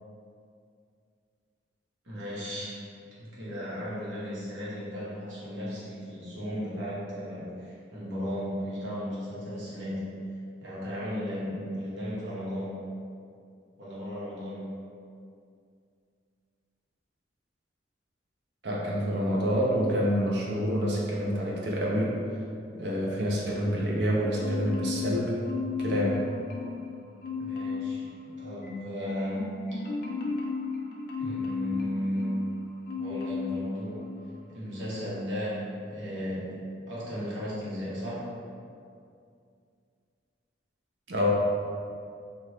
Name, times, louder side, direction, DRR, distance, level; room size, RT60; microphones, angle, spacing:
voice 1, 2.0-2.8 3.2-10.1 10.6-12.8 13.8-14.8 27.4-29.6 31.2-32.4 33.0-34.0 34.5-36.6 36.9-38.3, equal, 80° right, -9 dB, 1.1 m, -35 dB
voice 2, 18.6-22.2 22.7-25.4 25.8-26.2 41.1-41.3, equal, 65° right, -4 dB, 0.5 m, -27 dB
Marimba xylophone, 24.4-25.2 25.5-26.9 27.2-28.0 28.3-32.5 32.9-33.6 34.0-34.2, left 5 dB, 50° left, 0.4 m, -34 dB
2.8 x 2.5 x 3.2 m, 2.4 s
head